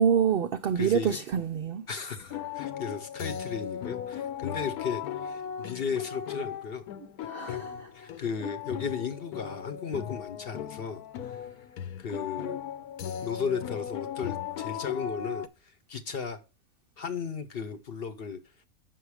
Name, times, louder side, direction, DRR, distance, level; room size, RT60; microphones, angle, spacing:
voice 1, 0.0-1.8 7.3-7.9, right 8 dB, 85° right, 0.5 m, -26 dB
voice 2, 0.8-1.2 1.9-6.9 7.2-7.6 7.9-11.7 12.0-12.6 13.2-16.4 17.0-18.4, left 6 dB, 50° left, 0.8 m, -35 dB
sound 1, 2.1-15.5, left 9 dB, 80° left, 1.2 m, -37 dB
7.6 x 6.2 x 4.7 m
omnidirectional pair, 1.6 m